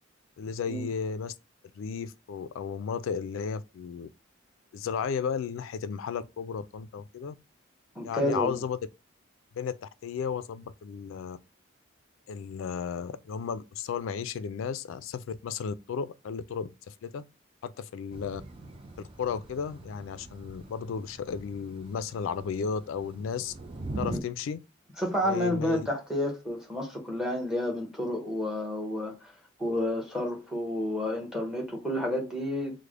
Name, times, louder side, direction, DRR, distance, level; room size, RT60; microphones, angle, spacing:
voice 1, 0.4-1.3 1.8-4.1 4.7-7.4 8.0-8.8 9.5-11.4 12.3-17.2 17.6-18.4 19.2-23.5 24.0-24.6 25.2-25.9, left 6 dB, 75° left, 0.3 m, -34 dB
voice 2, 7.9-8.6 24.0-24.2 25.0-29.3 29.6-32.8, left 1 dB, 5° right, 0.9 m, -30 dB
Thunder / Rain, 18.1-24.2, right 2 dB, 25° right, 0.4 m, -42 dB
3.3 x 2.1 x 3.5 m
head